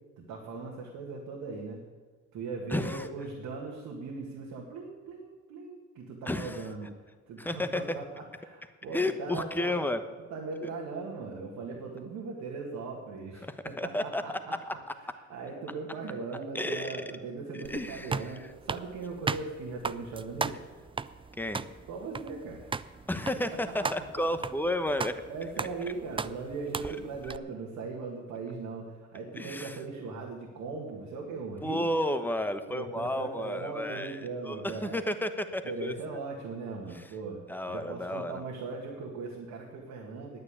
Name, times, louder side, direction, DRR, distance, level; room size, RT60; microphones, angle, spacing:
voice 1, 0.2-1.8 2.3-6.9 7.3-9.8 10.3-20.6 21.9-22.8 25.3-31.8 32.7-35.0 35.6-40.4, right 4 dB, 85° right, -1 dB, 2.1 m, -39 dB
voice 2, 2.7-3.1 6.3-6.6 7.4-7.8 8.9-10.0 10.6-10.7 13.4-14.7 16.5-17.0 17.7-18.3 21.4-21.6 23.1-25.1 26.8-26.9 29.4-29.8 31.6-34.2 34.4-35.9 37.5-38.4, left 1 dB, 5° left, 9 dB, 1.1 m, -32 dB
sound 1, 17.6-27.4, right 5 dB, 20° right, 0.4 m, -37 dB
9.7 x 9.1 x 9.9 m, 1.4 s
cardioid pair, 90°, 30 cm